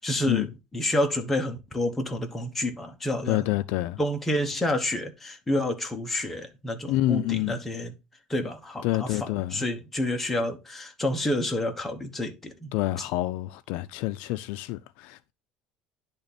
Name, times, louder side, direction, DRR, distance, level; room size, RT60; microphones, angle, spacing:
voice 1, 0.0-3.5 4.0-7.9 8.3-13.0, left 1 dB, 10° left, 0.9 m, -29 dB
voice 2, 3.3-4.0 6.9-7.6 8.8-9.6 12.7-15.3, left 16 dB, 70° left, 0.4 m, -28 dB
10.5 x 3.5 x 4.1 m
cardioid pair, 165°, 2 cm